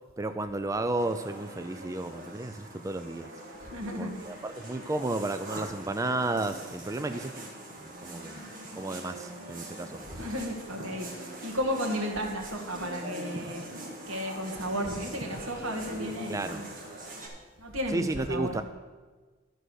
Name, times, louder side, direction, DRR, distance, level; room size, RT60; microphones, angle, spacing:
voice 1, 0.2-3.3 4.0-7.5 7.8-8.5 8.7-10.0 16.3-16.6 17.9-18.6, right 2 dB, 15° right, 8 dB, 0.4 m, -32 dB
sound 1, 1.0-17.3, right 1 dB, 45° right, 1.9 m, -42 dB
voice 2, 3.6-4.4 10.1-13.6 14.1-16.7 17.6-18.6, equal, 85° right, 1 dB, 1.9 m, -34 dB
11.5 x 6.3 x 6.3 m, 1.3 s
head